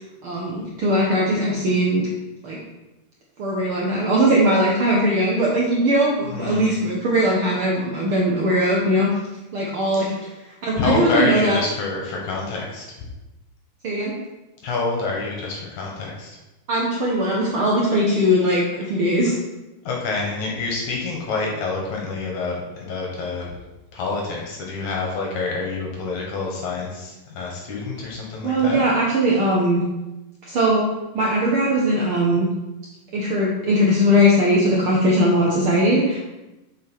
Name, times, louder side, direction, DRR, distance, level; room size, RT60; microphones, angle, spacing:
voice 1, 0.2-2.1 2.4-2.6 3.4-9.1 9.5-10.1 10.6-11.6 13.8-14.1 16.7-19.3 28.4-29.8 30.4-30.9 31.1-32.5 33.1-36.2, equal, 85° right, -4 dB, 1.1 m, -20 dB
voice 2, 6.3-6.7 9.9-10.1 10.8-12.9 14.6-16.4 19.8-23.5 23.9-28.9, left 3 dB, 60° left, -1 dB, 2.6 m, -27 dB
7.4 x 6.3 x 4.6 m, 1.0 s
omnidirectional pair, 4.1 m